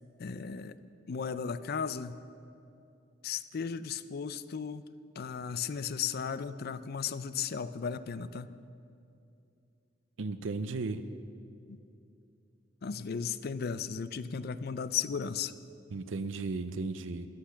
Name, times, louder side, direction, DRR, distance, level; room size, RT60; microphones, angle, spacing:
voice 1, 0.2-0.7 1.1-2.2 3.2-4.8 5.2-8.5 11.7-11.8 12.8-15.5, left 6 dB, 55° left, 14 dB, 0.4 m, -35 dB
voice 2, 10.2-11.0 15.9-17.3, right 3 dB, 80° right, 10 dB, 0.6 m, -35 dB
14.5 x 10.0 x 5.7 m, 2.6 s
head